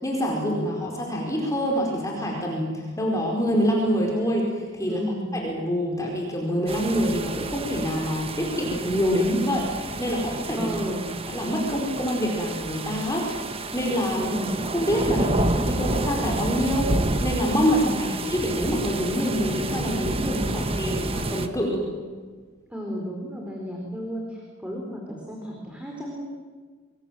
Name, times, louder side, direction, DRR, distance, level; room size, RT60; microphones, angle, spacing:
voice 1, 0.0-5.0 5.3-10.8 11.3-14.3 14.7-16.9 17.2-21.9, equal, 15° left, -1 dB, 4.9 m, -26 dB
voice 2, 4.9-5.3 10.6-11.2 14.1-14.6 17.8-18.3 22.7-26.2, equal, 5° right, -1 dB, 4.4 m, -33 dB
sound 1, 6.7-21.5, right 2 dB, 30° right, 1.4 m, -29 dB
28.0 x 22.5 x 7.8 m, 1.5 s
head